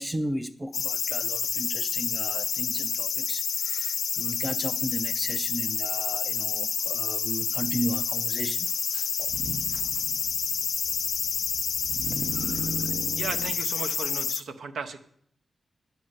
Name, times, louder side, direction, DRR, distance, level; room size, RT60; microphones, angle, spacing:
voice 1, 0.0-9.3 9.7-10.0, equal, 10° right, 0.4 m, -35 dB
sound 1, 0.7-14.4, left 7 dB, 80° left, 0.4 m, -29 dB
Motor vehicle (road), 7.9-8.0 9.2-13.5, right 1 dB, 40° right, 0.9 m, -38 dB
voice 2, 13.2-15.0, right 5 dB, 90° right, 0.8 m, -35 dB
9.6 x 6.8 x 6.4 m
wide cardioid pair, 120°, 0 cm